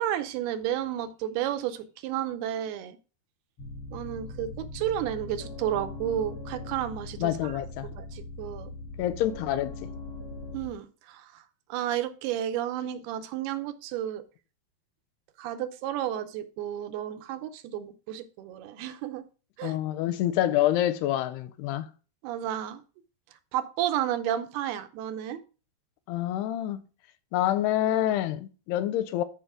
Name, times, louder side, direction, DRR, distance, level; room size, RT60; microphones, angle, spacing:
voice 1, 0.0-3.0 3.9-7.6 7.9-8.7 10.5-11.4 11.7-14.2 15.4-19.2 19.6-19.8 22.2-22.8 23.5-25.4, right 11 dB, 80° right, 2.6 m, -32 dB
sound 1, 3.6-10.7, left 2 dB, 55° left, 1.5 m, -40 dB
voice 2, 7.2-7.9 9.0-9.9 19.6-21.9 26.1-26.8 27.3-29.2, left 13 dB, 85° left, 2.7 m, -27 dB
12.5 x 5.2 x 3.6 m
omnidirectional pair, 4.7 m